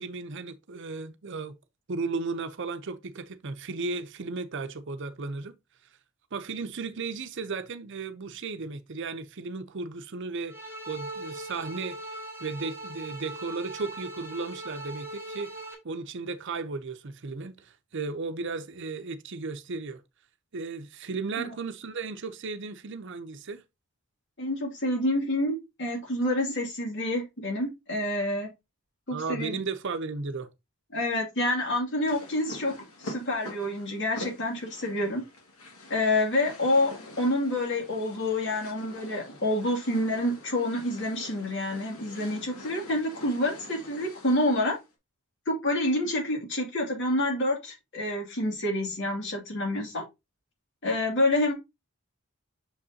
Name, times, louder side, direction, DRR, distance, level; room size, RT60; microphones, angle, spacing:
voice 1, 0.0-1.5 1.9-5.6 6.3-10.6 10.9-12.0 12.4-20.0 20.5-23.6 29.1-30.5, right 4 dB, 60° right, 0.7 m, -35 dB
sound 1, 10.5-15.7, right 2 dB, 10° right, 1.9 m, -40 dB
voice 2, 24.4-28.5 29.1-29.6 30.9-32.7 33.0-35.2 35.9-44.7 45.5-50.0 50.8-51.5, left 1 dB, 60° left, 2.4 m, -28 dB
sound 2, 32.1-44.9, left 1 dB, 90° left, 2.0 m, -45 dB
6.5 x 5.3 x 2.7 m
head